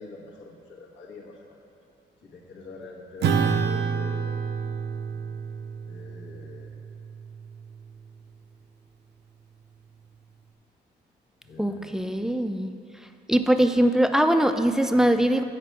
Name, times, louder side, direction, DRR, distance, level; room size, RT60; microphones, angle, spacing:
voice 1, 0.0-1.6 2.2-4.4 5.8-6.7 11.4-11.9, left 3 dB, 80° left, -2 dB, 1.3 m, -44 dB
Acoustic guitar / Strum, 3.2-8.0, right 6 dB, 65° right, 0.6 m, -29 dB
voice 2, 11.6-12.7 13.3-15.4, right 1 dB, 5° right, 8 dB, 0.3 m, -21 dB
7.9 x 4.6 x 5.9 m, 2.4 s
cardioid pair, 105°, 19 cm